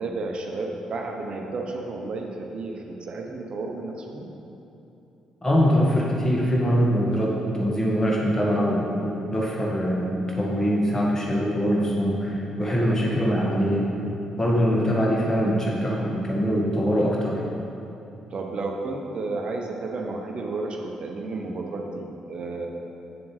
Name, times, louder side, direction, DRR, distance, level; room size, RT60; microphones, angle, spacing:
voice 1, 0.0-4.3 18.3-22.7, right 3 dB, 45° right, 1 dB, 0.9 m, -32 dB
voice 2, 5.4-13.8 14.3-17.4, equal, 20° left, -4 dB, 1.7 m, -23 dB
8.8 x 7.1 x 3.2 m, 2.8 s
figure-of-eight pair, 40°, 2 cm